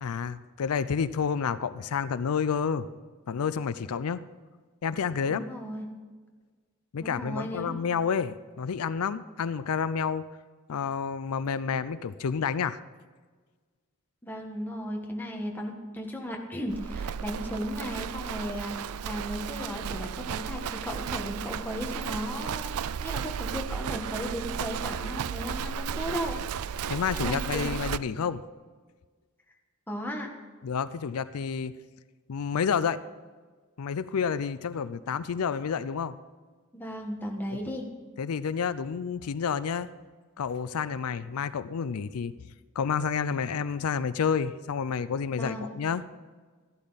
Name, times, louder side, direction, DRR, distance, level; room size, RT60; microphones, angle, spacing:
voice 1, 0.0-2.9 3.3-4.2 4.8-5.5 6.9-10.2 10.7-12.8 26.9-28.4 30.6-31.7 32.3-33.0 33.8-36.1 38.2-39.9 40.4-42.3 42.8-46.0, left 6 dB, 90° left, 15 dB, 0.5 m, -29 dB
voice 2, 5.2-5.9 7.0-7.8 14.2-26.4 27.1-27.8 29.9-30.3 36.7-37.9 45.4-45.7, equal, 10° left, 1 dB, 1.5 m, -35 dB
Livestock farm animals working animals, 16.7-28.0, right 7 dB, 85° right, 0.4 m, -34 dB
13.5 x 12.0 x 4.1 m, 1.4 s
head